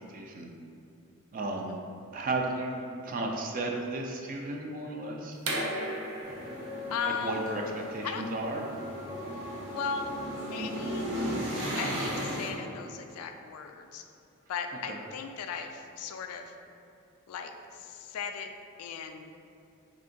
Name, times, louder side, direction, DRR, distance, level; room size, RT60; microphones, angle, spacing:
voice 1, 0.1-0.5 1.3-1.8 2.1-5.4 7.2-8.6 14.9-15.0, right 2 dB, 40° right, 1 dB, 0.3 m, -34 dB
sound 1, 5.4-11.0, right 1 dB, 90° right, 0.6 m, -38 dB
sound 2, 6.2-12.5, equal, 55° right, 0.8 m, -35 dB
voice 2, 6.9-7.5 8.0-8.2 9.7-10.1 10.4-11.1 11.8-14.1 14.5-16.6 17.3-18.5 18.8-19.3, left 6 dB, 75° left, 8 dB, 0.3 m, -37 dB
3.6 x 2.5 x 3.8 m, 2.6 s
head